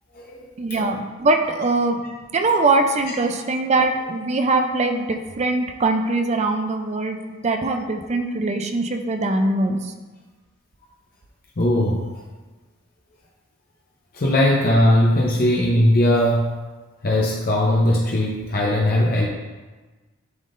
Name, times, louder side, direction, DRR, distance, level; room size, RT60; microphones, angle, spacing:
voice 1, 0.6-2.0 2.3-9.9, right 2 dB, 35° right, 5 dB, 0.5 m, -22 dB
voice 2, 11.6-12.1 14.1-16.5 17.0-19.3, left 1 dB, 45° left, -3 dB, 0.7 m, -19 dB
11.0 x 3.7 x 2.5 m, 1.3 s
head